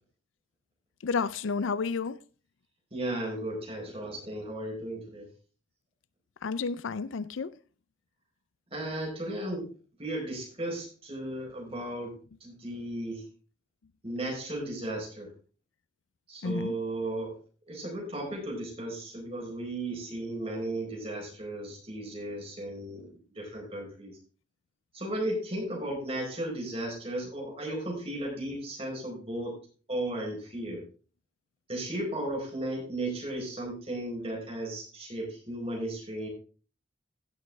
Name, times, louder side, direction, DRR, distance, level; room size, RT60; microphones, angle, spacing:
voice 1, 1.0-2.2 6.4-7.5 16.4-16.7, left 5 dB, 80° left, 0.5 m, -31 dB
voice 2, 2.9-5.3 8.7-9.7 10.0-12.1 12.4-13.2 14.0-15.3 16.3-17.4 17.7-24.2 24.9-29.5 29.9-30.8 31.7-36.3, right 1 dB, 30° right, 4.4 m, -35 dB
16.0 x 6.1 x 3.5 m
head